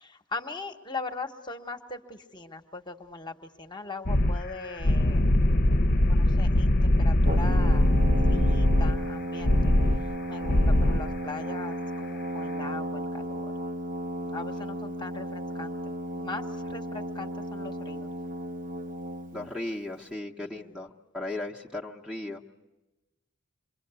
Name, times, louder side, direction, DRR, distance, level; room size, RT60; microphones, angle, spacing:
voice 1, 0.0-5.3 6.1-8.0 8.3-9.7 10.3-13.5 14.1-18.1 20.4-20.8, left 3 dB, 20° left, 5 dB, 1.1 m, -40 dB
sound 1, 4.1-4.4 4.6-9.0 9.4-10.0 10.4-11.0, left 1 dB, 45° left, 0.7 m, -22 dB
Brass instrument, 7.2-19.5, right 1 dB, 40° right, 0.8 m, -34 dB
voice 2, 10.2-10.6 19.3-22.4, left 2 dB, 5° right, 1 dB, 0.9 m, -37 dB
27.0 x 23.0 x 6.8 m, 1.1 s
head